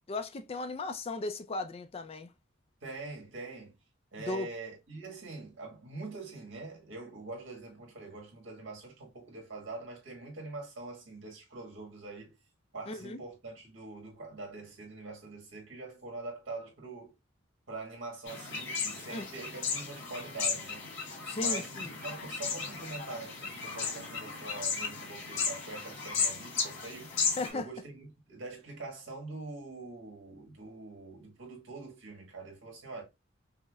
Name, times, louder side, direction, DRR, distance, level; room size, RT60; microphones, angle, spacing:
voice 1, 0.1-2.3 4.2-4.5 12.9-13.2 19.1-19.2 21.2-21.9 27.4-27.7, left 2 dB, 30° left, 0.4 m, -36 dB
voice 2, 2.8-3.7 4.1-12.3 12.7-17.1 17.7-20.8 21.4-27.1 27.5-33.0, right 3 dB, 80° right, 1.6 m, -44 dB
sound 1, 18.3-27.5, left 5 dB, 85° left, 2.0 m, -35 dB
5.4 x 2.1 x 2.3 m
head